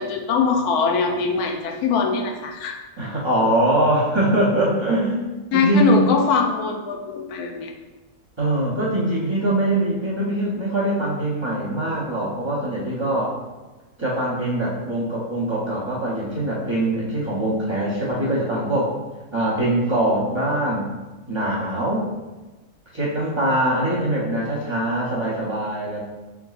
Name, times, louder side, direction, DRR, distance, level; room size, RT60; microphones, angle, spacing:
voice 1, 0.0-2.8 5.5-7.7, left 5 dB, 80° left, 4 dB, 1.1 m, -22 dB
voice 2, 3.0-6.0 8.4-13.4 14.0-18.9 19.3-20.8 21.3-22.1 22.9-26.0, right 1 dB, 40° right, -7 dB, 0.4 m, -22 dB
4.6 x 3.5 x 2.3 m, 1.2 s
omnidirectional pair, 1.6 m